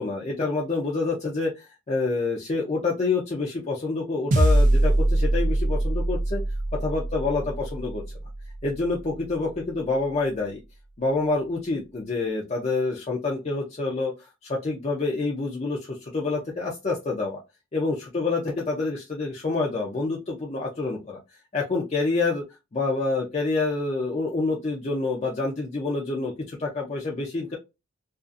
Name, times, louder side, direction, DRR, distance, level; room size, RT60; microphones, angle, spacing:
voice 1, 0.0-6.4 6.8-8.0 8.6-10.6 11.0-14.1 14.4-17.4 17.7-21.2 21.5-22.4 22.7-27.6, left 3 dB, 30° left, -2 dB, 0.4 m, -27 dB
sound 1, 4.3-8.9, right 1 dB, 35° right, 0.3 m, -23 dB
2.4 x 2.4 x 2.4 m, 0.25 s
head